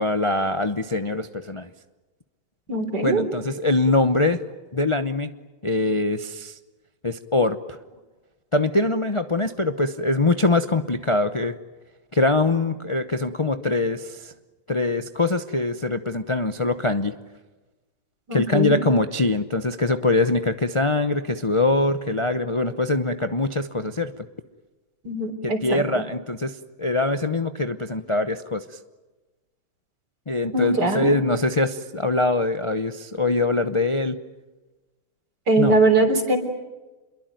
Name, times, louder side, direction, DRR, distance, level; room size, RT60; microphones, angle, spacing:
voice 1, 0.0-1.7 3.0-4.4 4.7-5.3 5.6-6.6 7.0-7.8 8.5-11.5 12.1-14.3 14.7-17.1 18.3-24.3 25.4-28.6 30.3-34.2 35.6-35.8, left 2 dB, 40° left, 9 dB, 0.4 m, -23 dB
voice 2, 2.7-3.2 18.3-18.8 25.0-26.0 30.5-31.1 35.5-36.4, right 2 dB, 55° right, 6 dB, 4.3 m, -21 dB
28.0 x 22.5 x 9.2 m, 1.2 s
omnidirectional pair, 2.1 m